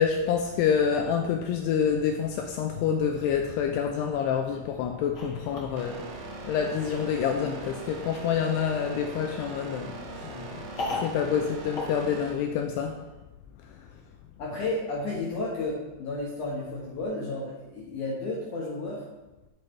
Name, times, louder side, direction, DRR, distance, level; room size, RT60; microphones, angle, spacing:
voice 1, 0.0-6.0 6.4-10.6 11.0-13.0, left 7 dB, 85° left, 3 dB, 2.4 m, -27 dB
sound 1, 5.1-12.8, left 2 dB, 50° left, 1.6 m, -41 dB
sound 2, 5.8-12.3, right 3 dB, 80° right, 1.7 m, -40 dB
voice 2, 14.4-19.1, left 2 dB, 70° left, -5 dB, 1.9 m, -32 dB
9.4 x 8.9 x 3.2 m, 1.1 s
omnidirectional pair, 5.4 m